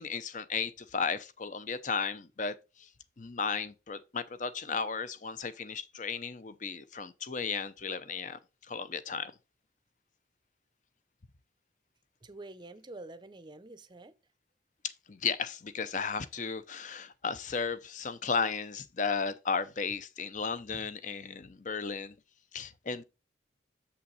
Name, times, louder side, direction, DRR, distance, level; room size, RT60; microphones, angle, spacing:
voice 1, 0.0-2.5 3.2-8.4 8.7-9.3 15.1-22.1 22.5-23.0, left 5 dB, 45° left, 0.7 m, -34 dB
voice 2, 12.2-14.1 22.9-23.0, right 2 dB, 25° right, 0.6 m, -47 dB
7.2 x 5.7 x 4.1 m
head